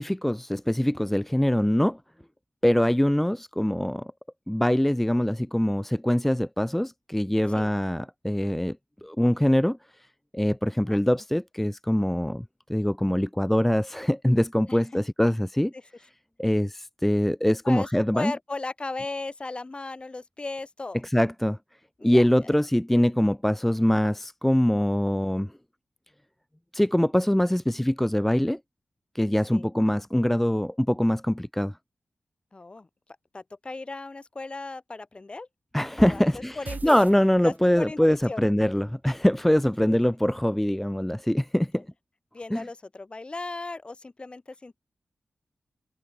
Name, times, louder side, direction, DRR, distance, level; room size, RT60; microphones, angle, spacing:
voice 1, 0.0-2.0 2.6-4.1 4.5-8.8 9.0-9.8 10.3-12.4 12.7-15.7 16.4-18.3 21.0-21.6 22.0-25.5 26.7-28.6 29.1-31.7 35.7-41.8 42.5-42.6, equal, 5° left, 0.4 m, -23 dB
voice 2, 18.1-21.0 22.0-22.5 29.5-29.7 32.5-32.9 33.3-35.5 36.0-37.0 37.4-38.5 39.9-40.0 41.8-41.9 42.3-44.8, left 3 dB, 30° left, 2.0 m, -36 dB
sound 1, 36.7-37.9, right 4 dB, 50° right, 1.3 m, -40 dB
wide cardioid pair, 120°, 4 cm